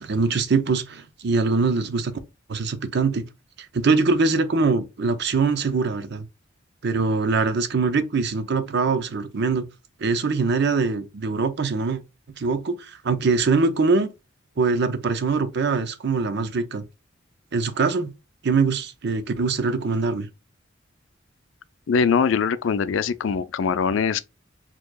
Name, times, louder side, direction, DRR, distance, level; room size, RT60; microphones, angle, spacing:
voice 1, 0.0-2.2 2.5-3.3 3.6-6.3 6.8-9.7 10.0-12.0 12.4-14.1 14.6-16.8 17.5-18.1 18.4-20.3, right 4 dB, 60° right, 0.6 m, -23 dB
voice 2, 21.9-24.2, left 6 dB, 75° left, 0.4 m, -22 dB
4.6 x 2.9 x 2.2 m
head